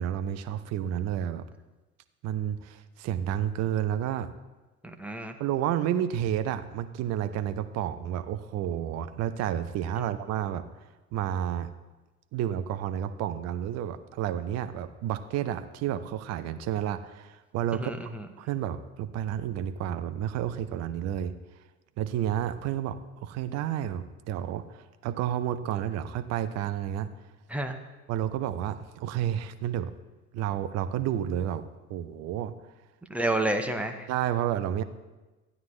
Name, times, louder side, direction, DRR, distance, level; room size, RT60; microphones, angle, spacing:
voice 1, 0.0-1.5 2.2-4.3 5.4-10.6 11.1-11.7 12.3-17.9 18.4-21.3 22.0-27.1 28.1-29.9 30.3-32.5 34.1-34.8, right 10 dB, 35° right, 11 dB, 0.7 m, -30 dB
voice 2, 4.8-5.4 10.0-10.1 17.7-18.3 27.5-27.8 33.1-34.1, right 1 dB, 5° right, 4 dB, 0.8 m, -30 dB
14.5 x 9.2 x 3.1 m, 1.2 s
figure-of-eight pair, 70°, 43 cm